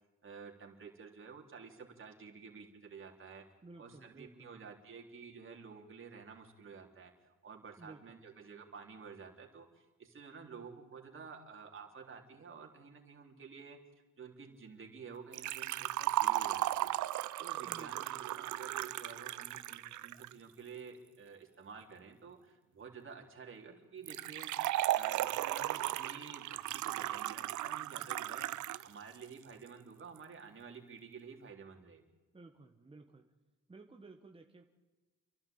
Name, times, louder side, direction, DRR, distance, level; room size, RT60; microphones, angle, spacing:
voice 1, 0.2-3.4 3.8-13.8 14.2-17.0 17.4-32.0, right 5 dB, 40° right, 2 dB, 3.8 m, -51 dB
voice 2, 3.6-4.6 7.8-8.2 17.7-18.3 32.3-33.2 33.7-34.6, right 3 dB, 20° right, 4 dB, 1.6 m, -55 dB
Liquid, 15.3-20.3 24.1-28.9 29.1-29.2 30.2-30.3, right 15 dB, 75° right, 0.7 m, -36 dB
30.0 x 12.0 x 8.9 m, 1.2 s
cardioid pair, 90°, 30 cm